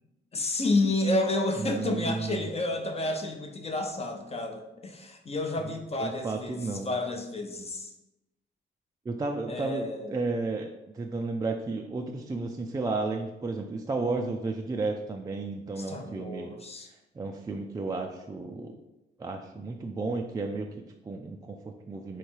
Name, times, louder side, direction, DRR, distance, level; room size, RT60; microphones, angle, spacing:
voice 1, 0.3-6.6 6.8-7.9 9.5-10.2 15.8-16.9, left 2 dB, 30° left, 4 dB, 0.7 m, -30 dB
voice 2, 1.6-2.5 6.0-6.9 9.1-10.7 10.9-16.5 17.2-18.8 19.2-22.2, right 3 dB, 20° right, 2 dB, 0.3 m, -33 dB
3.6 x 3.2 x 4.4 m, 0.96 s
cardioid pair, 90°, 20 cm